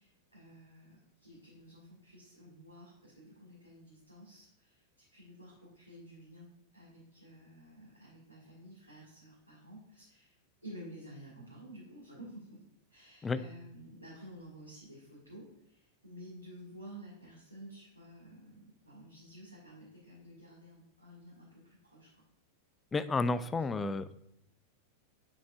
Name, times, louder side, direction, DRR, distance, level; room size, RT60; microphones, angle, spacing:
voice 1, 0.0-10.4 10.6-12.6 12.9-22.1 23.3-23.5, equal, 90° right, -8 dB, 2.0 m, -52 dB
voice 2, 22.9-24.1, left 3 dB, 15° left, 14 dB, 0.3 m, -31 dB
8.5 x 5.9 x 2.4 m, 0.78 s
figure-of-eight pair, 90°, 0 cm